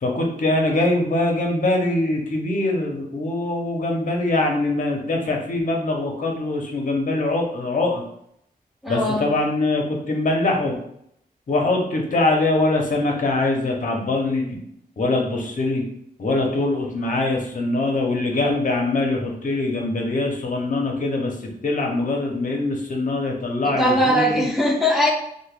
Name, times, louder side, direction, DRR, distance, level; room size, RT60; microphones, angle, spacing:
voice 1, 0.0-8.0 8.9-10.7 11.5-14.6 15.0-15.8 16.2-21.3 21.6-24.5, left 2 dB, 55° left, 1 dB, 0.7 m, -23 dB
voice 2, 8.8-9.3 23.6-25.1, equal, ahead, -2 dB, 0.6 m, -20 dB
3.3 x 2.2 x 3.3 m, 0.71 s
wide cardioid pair, 135°, 16 cm